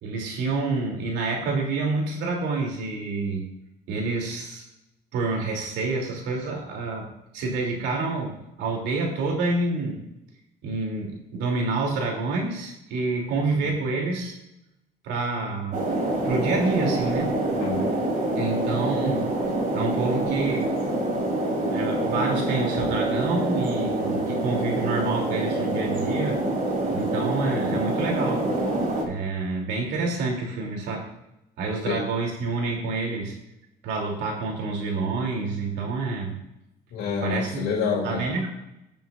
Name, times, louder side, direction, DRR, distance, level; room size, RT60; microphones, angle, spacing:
voice 1, 0.0-3.5 3.9-4.6 5.1-7.1 7.3-10.0 10.6-14.4 15.0-15.8 16.2-17.4 18.3-19.3 19.7-20.7 21.7-26.4 26.9-28.5 29.0-31.1 31.6-33.4 33.8-36.3 37.2-37.7 38.0-38.5, right 3 dB, 90° right, 0 dB, 2.9 m, -28 dB
sound 1, 15.7-29.1, right 2 dB, 55° right, 3.6 m, -26 dB
voice 2, 17.5-18.0 31.9-32.0 36.9-38.2, left 5 dB, 80° left, -5 dB, 2.4 m, -27 dB
17.0 x 7.0 x 2.5 m, 0.89 s
cardioid pair, 110°, 17 cm